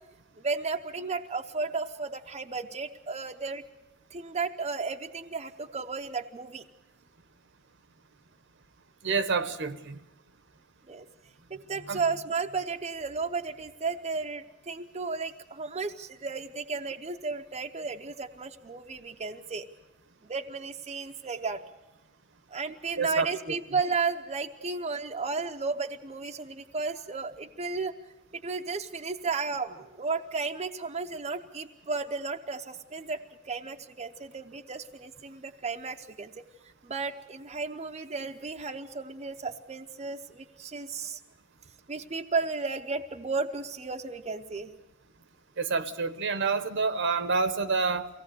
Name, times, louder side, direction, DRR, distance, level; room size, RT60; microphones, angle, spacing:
voice 1, 0.4-3.6 4.1-6.6 10.9-11.1 11.5-19.7 20.2-21.6 22.5-27.9 28.3-33.2 33.5-36.3 36.8-41.2 41.9-44.7, right 4 dB, 35° right, 4 dB, 0.7 m, -33 dB
voice 2, 9.0-10.0 11.9-12.0 22.9-23.6 45.6-48.1, right 4 dB, 65° right, 11 dB, 1.0 m, -28 dB
23.5 x 17.5 x 6.8 m, 1.0 s
head